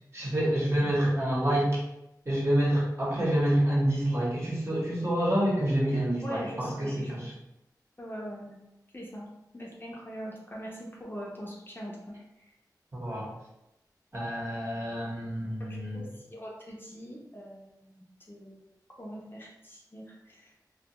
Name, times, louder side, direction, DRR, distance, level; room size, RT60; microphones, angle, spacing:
voice 1, 0.1-1.8 2.3-7.3 12.9-13.3 14.1-16.1, right 1 dB, 40° right, -5 dB, 1.0 m, -27 dB
voice 2, 6.2-7.2 8.0-8.6 8.9-9.3 9.5-12.5 15.6-18.6 19.0-20.5, equal, 30° left, -3 dB, 0.6 m, -42 dB
2.3 x 2.2 x 2.9 m, 0.89 s
wide cardioid pair, 50°, 7 cm